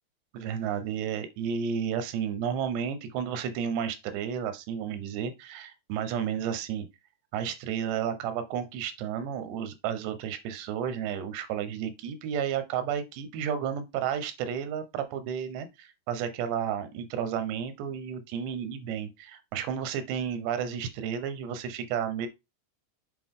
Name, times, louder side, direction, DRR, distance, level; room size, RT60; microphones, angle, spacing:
voice 1, 0.3-6.9 7.3-22.3, right 8 dB, 90° right, 3.2 m, -32 dB
8.3 x 4.9 x 3.8 m
omnidirectional pair, 4.8 m